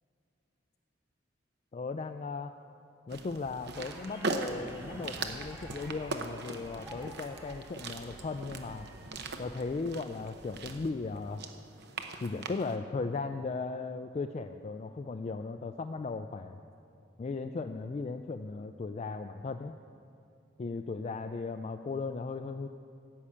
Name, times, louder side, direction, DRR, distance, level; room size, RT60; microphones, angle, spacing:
voice 1, 1.7-2.5 3.1-8.9 9.4-11.4 12.2-16.6 17.2-19.7 20.6-22.7, left 4 dB, 35° left, 6 dB, 0.3 m, -37 dB
sound 1, 3.1-12.8, right 3 dB, 60° right, 0.8 m, -40 dB
sound 2, 3.7-9.9, equal, 15° right, 1.2 m, -52 dB
13.0 x 5.7 x 8.6 m, 2.5 s
head